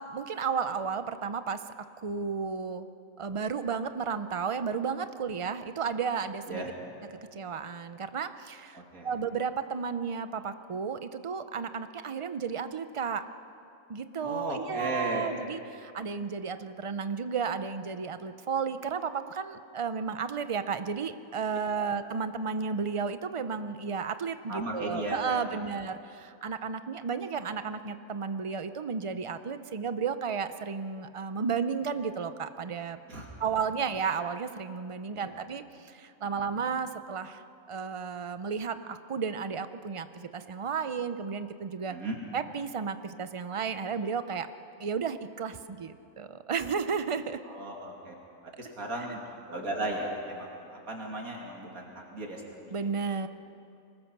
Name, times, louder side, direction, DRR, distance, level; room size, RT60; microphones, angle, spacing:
voice 1, 0.0-1.6 2.0-2.9 3.2-6.6 7.3-13.2 13.9-33.0 33.4-37.4 37.7-41.9 42.3-44.5 44.8-47.4 52.7-53.3, right 6 dB, 40° right, 11 dB, 0.4 m, -33 dB
voice 2, 8.7-9.1 14.2-15.3 21.8-21.9 24.5-25.7 33.1-33.5 35.1-35.4 36.3-36.5 41.9-42.2 47.4-48.1 48.6-49.2 49.5-52.4 52.7-52.9, right 1 dB, 75° right, -1 dB, 3.1 m, -36 dB
24.0 x 20.0 x 6.0 m, 2.5 s
omnidirectional pair, 1.5 m